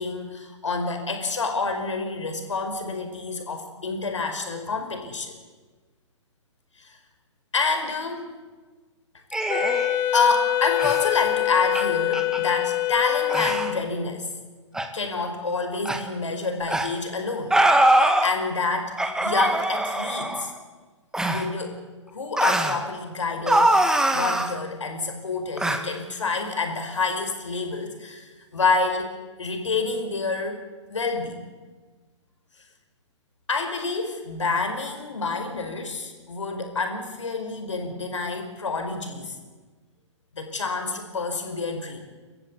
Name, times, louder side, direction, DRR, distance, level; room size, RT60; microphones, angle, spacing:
voice 1, 0.0-5.4 6.8-7.0 7.5-8.2 10.1-14.3 14.9-17.6 18.0-20.5 21.3-21.8 22.1-23.8 24.1-29.1 29.4-30.6 30.9-31.4 33.5-39.4 40.3-42.0, left 4 dB, 75° left, 6 dB, 4.9 m, -28 dB
sound 1, 9.3-10.0 10.8-11.1 11.7-11.8 12.1-12.4 13.3-13.7 14.7-14.9 15.9-16.0 16.7-16.9 17.5-18.3 19.0-20.5 21.1-21.5 22.4-22.8 23.5-24.5 25.6-25.8, right 1 dB, 5° right, 1.8 m, -22 dB
Wind instrument woodwind instrument, 9.5-14.1, left 15 dB, 25° left, 1.4 m, -25 dB
29.5 x 14.5 x 8.3 m, 1.4 s
figure-of-eight pair, 115°, 16 cm